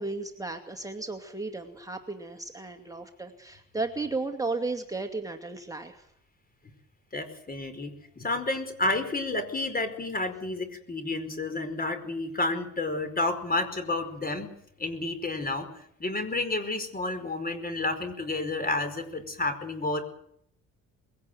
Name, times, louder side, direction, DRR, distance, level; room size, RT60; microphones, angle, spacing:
voice 1, 0.0-6.1, right 3 dB, 10° right, 4 dB, 2.3 m, -34 dB
voice 2, 7.1-14.5 14.8-15.7 16.0-20.0, left 2 dB, 30° left, 10 dB, 4.7 m, -30 dB
21.5 x 17.0 x 9.3 m, 0.72 s
cardioid pair, 90°, 30 cm